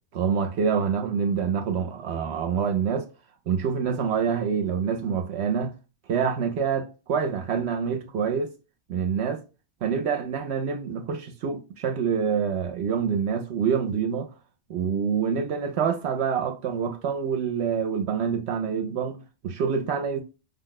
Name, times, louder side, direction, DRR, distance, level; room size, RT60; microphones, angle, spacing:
voice 1, 0.1-3.1 3.5-5.8 6.1-8.5 8.9-9.4 9.8-14.3 14.7-20.2, right 6 dB, 70° right, 0.8 m, -26 dB
5.3 x 2.1 x 3.9 m
omnidirectional pair, 1.2 m